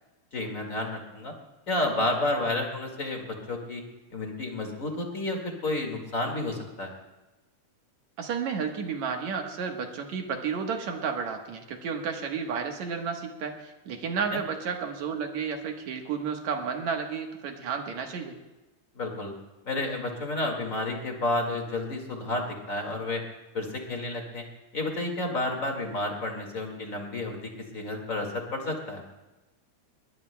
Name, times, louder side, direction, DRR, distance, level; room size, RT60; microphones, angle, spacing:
voice 1, 0.3-1.3 1.7-3.8 4.1-6.9 14.3-14.4 19.0-19.3 19.6-23.2 23.5-24.4 24.7-29.0, left 2 dB, 30° left, 2 dB, 2.0 m, -31 dB
voice 2, 8.2-18.4, right 6 dB, 65° right, 4 dB, 2.5 m, -32 dB
21.5 x 20.0 x 2.2 m, 1.1 s
omnidirectional pair, 3.6 m